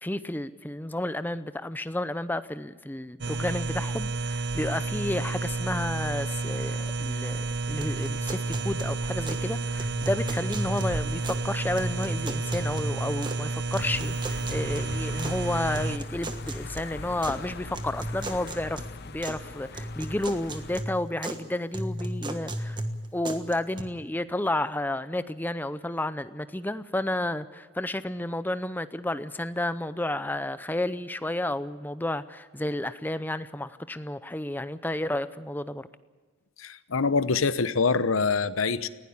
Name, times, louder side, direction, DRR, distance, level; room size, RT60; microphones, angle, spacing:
voice 1, 0.0-22.8 23.1-35.9, left 1 dB, 10° left, 13 dB, 0.6 m, -31 dB
sound 1, 3.2-16.0, right 3 dB, 55° right, 0.7 m, -31 dB
sound 2, 7.8-9.5 9.8-11.5 11.8-13.5 13.7-15.4 15.7-17.4 17.7-19.4 19.7-21.4 21.7-23.8, right 1 dB, 20° right, 1.4 m, -36 dB
sound 3, 13.8-20.8, left 4 dB, 50° left, 0.6 m, -41 dB
voice 2, 36.6-38.9, left 4 dB, 85° left, 14 dB, 0.9 m, -25 dB
20.0 x 16.5 x 8.5 m, 1.4 s
head